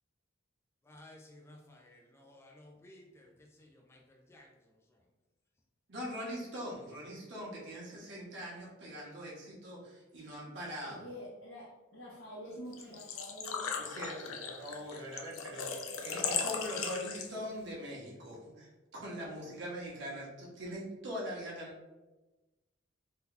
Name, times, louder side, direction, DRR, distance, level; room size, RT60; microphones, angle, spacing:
voice 1, 0.9-4.5, left 1 dB, 15° left, 0 dB, 0.3 m, -56 dB
voice 2, 5.9-11.1 13.8-21.7, equal, 60° right, -4 dB, 0.8 m, -42 dB
voice 3, 10.8-13.8, equal, 65° left, -9 dB, 0.8 m, -47 dB
Engine / Trickle dribble / Fill (with liquid), 12.7-17.6, left 6 dB, 85° left, 0.4 m, -37 dB
2.7 x 2.2 x 3.7 m, 1.1 s
head